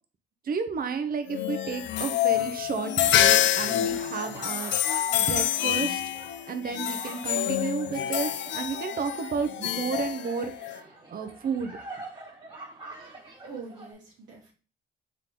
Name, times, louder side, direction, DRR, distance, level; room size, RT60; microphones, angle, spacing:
voice 1, 0.4-6.0 6.5-11.8, right 5 dB, 50° right, 8 dB, 0.8 m, -32 dB
sound 1, 1.3-10.8, left 11 dB, 65° left, 0.4 m, -27 dB
sound 2, 2.9-13.9, right 2 dB, 25° right, 1.5 m, -46 dB
voice 2, 12.9-14.5, right 4 dB, 75° right, -5 dB, 1.2 m, -45 dB
3.8 x 3.7 x 3.0 m, 0.36 s
cardioid pair, 90°, 20 cm